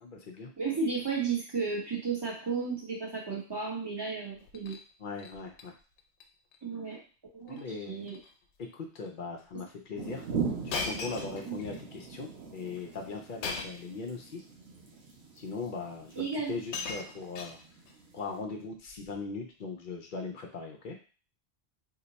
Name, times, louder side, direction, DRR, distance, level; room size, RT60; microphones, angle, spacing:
voice 1, 0.0-0.5 5.0-5.7 7.5-8.1 8.6-10.3 10.6-14.4 15.4-17.6 18.1-21.0, left 4 dB, 55° left, 2 dB, 0.7 m, -39 dB
voice 2, 0.6-4.8 6.6-7.0 7.3-7.6 7.9-8.2 11.5-11.6 16.2-16.5, right 5 dB, 25° right, -3 dB, 1.0 m, -33 dB
Shatter, 4.3-4.8 5.2-5.7 6.0-6.2 6.5-6.6 7.5-7.7 8.0-8.3 9.1-9.2 10.7-11.8 13.4-13.9 14.9-15.0 16.1-16.2 16.4-17.9 18.9-19.2, left 4 dB, 80° left, 0.9 m, -39 dB
sound 1, 10.0-18.4, right 5 dB, 75° right, 1.0 m, -40 dB
2.8 x 2.2 x 3.9 m, 0.37 s
omnidirectional pair, 1.1 m